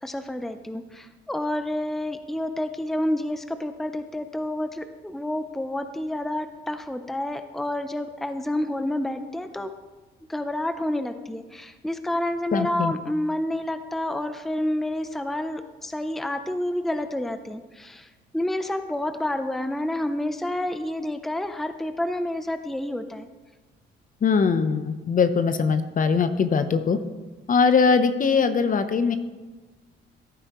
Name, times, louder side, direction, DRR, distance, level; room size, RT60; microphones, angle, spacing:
voice 1, 0.0-9.7 10.3-23.3, left 1 dB, ahead, 8 dB, 0.6 m, -29 dB
voice 2, 12.5-12.9 24.2-27.0 27.5-29.1, left 5 dB, 45° left, 10 dB, 0.8 m, -21 dB
14.5 x 8.7 x 3.1 m, 1.2 s
cardioid pair, 90°, 20 cm